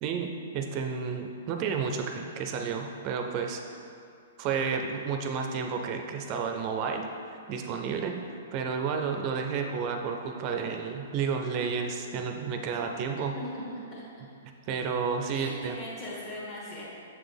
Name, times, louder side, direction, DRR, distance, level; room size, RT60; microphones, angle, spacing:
voice 1, 0.0-3.6 4.4-13.4 14.7-15.8, right 6 dB, 35° right, 4 dB, 0.4 m, -31 dB
voice 2, 13.3-13.6 13.9-14.0 15.3-16.8, left 1 dB, 40° left, -8 dB, 1.2 m, -39 dB
7.1 x 4.0 x 3.4 m, 2.5 s
hypercardioid pair, 145°, 0 cm